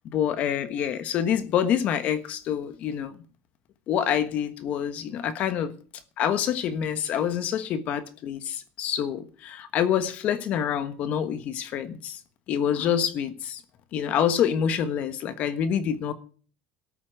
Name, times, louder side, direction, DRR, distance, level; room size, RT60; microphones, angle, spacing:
voice 1, 0.0-3.1 3.9-5.7 6.2-12.2 12.5-13.6 13.9-16.1, left 9 dB, 45° left, 1.3 m, -26 dB
13.5 x 8.6 x 7.7 m
cardioid pair, 145°, 3 cm